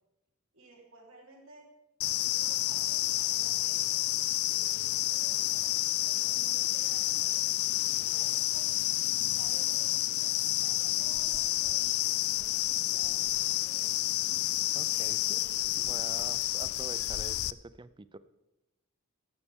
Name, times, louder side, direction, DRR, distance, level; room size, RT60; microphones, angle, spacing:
voice 1, 0.5-1.7 2.2-4.1 4.5-7.5 7.7-8.7 9.1-10.3 10.6-13.9 14.9-16.8, right 2 dB, 70° right, -2 dB, 3.9 m, -55 dB
sound 1, 2.0-17.5, left 16 dB, 80° left, 0.4 m, -29 dB
voice 2, 14.7-15.4 15.8-18.2, right 3 dB, 20° right, 15 dB, 0.4 m, -46 dB
15.5 x 12.5 x 3.7 m, 0.91 s
head